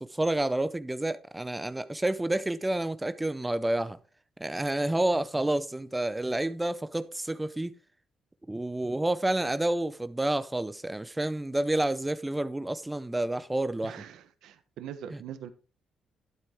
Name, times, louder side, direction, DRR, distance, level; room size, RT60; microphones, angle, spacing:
voice 1, 0.0-4.0 4.4-7.7 8.5-13.9, right 1 dB, 10° right, 0.6 m, -29 dB
voice 2, 13.8-15.5, right 9 dB, 80° right, 1.1 m, -42 dB
12.0 x 8.2 x 3.5 m
cardioid pair, 90°, 0 cm